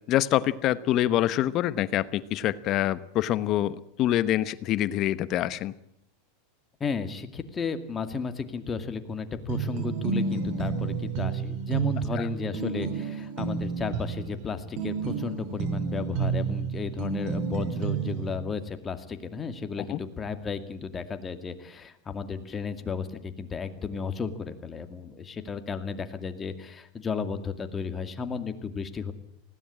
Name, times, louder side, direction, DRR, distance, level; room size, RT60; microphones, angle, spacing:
voice 1, 0.1-5.7 12.2-12.3 19.9-20.0, left 13 dB, 45° left, 15 dB, 1.0 m, -25 dB
voice 2, 6.8-29.1, left 5 dB, 25° left, 8 dB, 2.3 m, -34 dB
sound 1, 9.5-18.4, right 6 dB, 60° right, 2.4 m, -30 dB
20.0 x 16.5 x 8.6 m, 0.77 s
hypercardioid pair, 110°, 0 cm